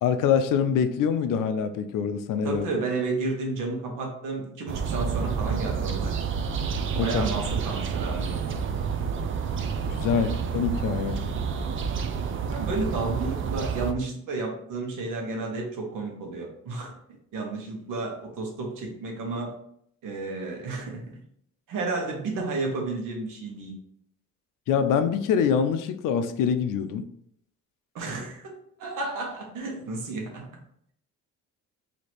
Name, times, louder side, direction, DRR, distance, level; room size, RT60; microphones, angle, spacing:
voice 1, 0.0-2.7 7.0-7.2 9.9-11.2 24.7-27.0, left 7 dB, 85° left, 10 dB, 0.5 m, -25 dB
voice 2, 2.4-6.3 7.0-8.5 10.1-10.4 12.5-16.9 17.3-19.5 20.0-21.2 21.7-23.7 27.9-30.5, right 3 dB, 90° right, 1 dB, 1.2 m, -32 dB
sound 1, 4.7-13.9, right 6 dB, 40° right, 0.4 m, -29 dB
3.2 x 2.8 x 4.2 m, 0.69 s
cardioid pair, 125°, 31 cm